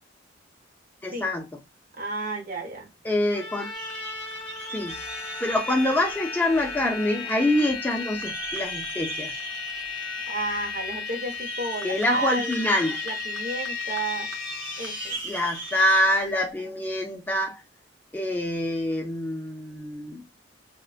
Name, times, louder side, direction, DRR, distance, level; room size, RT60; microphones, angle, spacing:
voice 1, 1.0-1.5 3.0-3.7 4.7-4.9 5.4-9.3 11.8-13.1 15.2-17.6 18.1-20.2, left 1 dB, 10° left, 0.4 m, -25 dB
voice 2, 2.0-2.9 10.3-12.6 13.0-14.3 14.8-15.2, right 2 dB, 50° right, 0.7 m, -32 dB
Trumpet, 3.3-7.8, left 2 dB, 30° left, 0.9 m, -40 dB
sound 1, 3.7-16.0, right 3 dB, 85° right, 0.7 m, -39 dB
sound 2, 4.9-16.2, left 5 dB, 90° left, 0.5 m, -35 dB
2.4 x 2.1 x 2.3 m
head